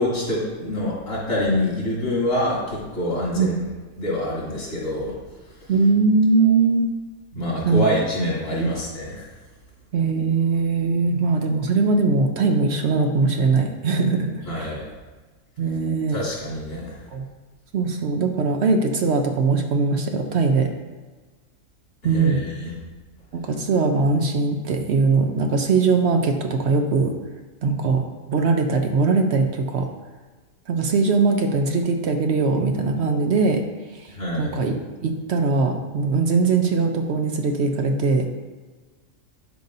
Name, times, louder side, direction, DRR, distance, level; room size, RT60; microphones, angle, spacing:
voice 1, 0.0-3.6 4.0-5.1 6.4-6.5 7.3-9.3 14.4-14.8 16.1-16.9 22.0-22.7 34.1-34.5, left 1 dB, 75° left, -6 dB, 3.0 m, -26 dB
voice 2, 5.7-6.9 7.6-7.9 8.5-8.7 9.9-14.8 15.6-16.2 17.1-17.2 17.7-20.7 22.0-22.4 23.3-27.1 27.6-29.9 30.7-33.6 33.9-34.7 35.0-38.3, right 4 dB, 60° right, 5 dB, 0.8 m, -21 dB
11.5 x 5.3 x 2.7 m, 1.3 s
omnidirectional pair, 1.4 m